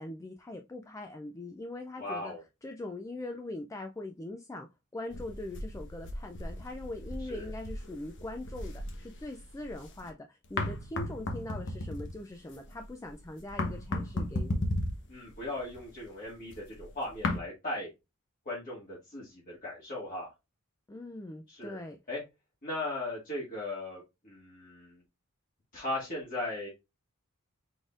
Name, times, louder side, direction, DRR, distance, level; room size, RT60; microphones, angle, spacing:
voice 1, 0.0-2.3 2.6-4.7 4.9-14.6 20.9-22.0, left 2 dB, 15° left, 0.3 m, -41 dB
voice 2, 2.0-2.4 7.3-7.5 15.1-17.9 18.5-20.3 21.5-21.8 22.1-22.2 22.6-25.0 25.7-26.7, left 2 dB, 40° left, 1.9 m, -38 dB
sound 1, 5.1-10.1 10.4-17.4, left 1 dB, 55° left, 1.0 m, -36 dB
5.1 x 4.1 x 2.4 m
head